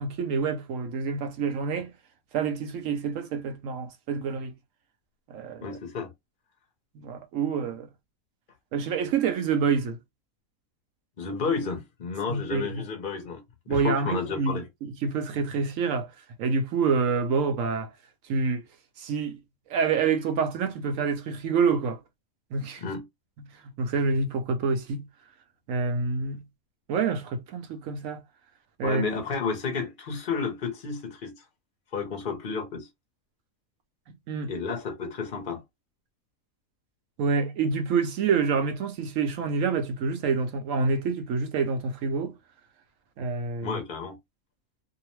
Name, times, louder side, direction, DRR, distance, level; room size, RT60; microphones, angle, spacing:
voice 1, 0.0-1.9 2.3-4.5 5.3-5.8 6.9-7.9 8.7-10.0 12.3-12.8 13.7-16.1 16.4-17.9 18.3-18.6 19.0-19.4 19.7-22.0 22.5-22.8 23.6-25.1 25.7-26.4 26.9-28.2 28.8-29.0 34.3-34.5 37.2-42.3 43.2-43.8, right 5 dB, 70° right, 1.0 m, -27 dB
voice 2, 5.6-6.1 11.2-14.7 22.8-23.1 28.8-31.4 31.9-32.9 34.5-35.6 43.6-44.2, left 5 dB, 45° left, 0.7 m, -31 dB
2.8 x 2.1 x 3.0 m
omnidirectional pair, 1.5 m